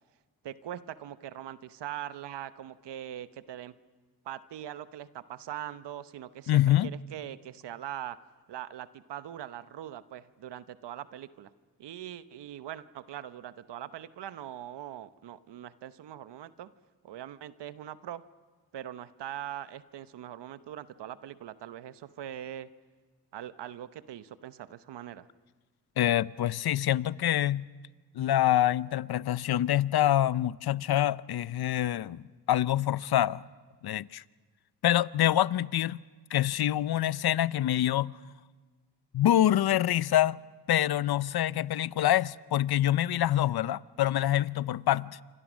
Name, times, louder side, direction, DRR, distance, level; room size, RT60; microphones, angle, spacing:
voice 1, 0.4-3.7 4.2-8.2 8.5-11.5 11.8-16.7 17.0-18.2 18.7-22.7 23.3-25.3, right 11 dB, 85° right, 0.9 m, -42 dB
voice 2, 6.5-6.9 26.0-27.7 28.1-33.4 33.8-34.2 34.8-36.0 36.3-38.1 39.1-40.4 40.7-45.2, left 12 dB, 65° left, 0.7 m, -26 dB
28.0 x 25.5 x 6.3 m
supercardioid pair, 45°, 41 cm